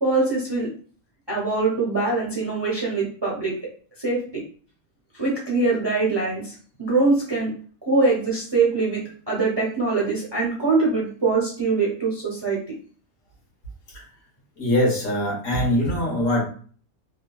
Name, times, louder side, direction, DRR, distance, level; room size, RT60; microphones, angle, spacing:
voice 1, 0.0-0.7 1.3-3.5 4.0-4.4 5.1-7.5 7.9-12.7, right 3 dB, 30° right, -3 dB, 0.5 m, -23 dB
voice 2, 14.6-16.4, left 1 dB, 80° left, -1 dB, 1.4 m, -22 dB
3.1 x 2.3 x 2.2 m, 0.43 s
omnidirectional pair, 1.3 m